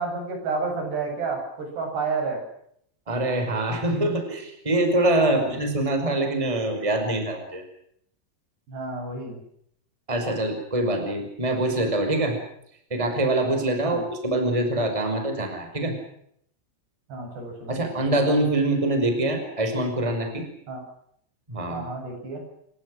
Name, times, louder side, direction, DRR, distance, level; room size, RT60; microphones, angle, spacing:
voice 1, 0.0-2.4 5.3-5.6 8.7-9.4 13.8-14.1 17.1-18.0 20.7-20.8 21.7-22.4, right 4 dB, 60° right, 3 dB, 9.9 m, -31 dB
voice 2, 3.1-7.6 10.1-12.4 12.9-15.9 17.7-20.4 21.5-21.9, right 1 dB, 5° right, 5 dB, 5.0 m, -24 dB
27.0 x 23.0 x 6.5 m, 0.71 s
omnidirectional pair, 5.3 m